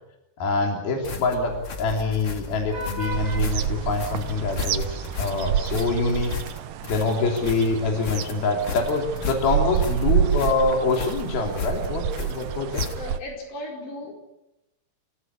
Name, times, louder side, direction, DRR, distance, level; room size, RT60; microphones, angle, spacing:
voice 1, 0.4-1.5 1.8-6.3 6.9-12.8, left 3 dB, 65° left, 5.0 m, -25 dB
sound 1, 1.0-13.3, left 5 dB, 45° left, 2.1 m, -35 dB
Vehicle horn car horn honking / Traffic noise roadway noise, 1.0-6.4, left 1 dB, 5° left, 7.9 m, -37 dB
sound 2, 3.1-13.2, right 10 dB, 85° right, 1.6 m, -28 dB
voice 2, 13.0-14.1, left 1 dB, 85° left, 6.9 m, -36 dB
28.5 x 16.0 x 9.8 m
omnidirectional pair, 4.8 m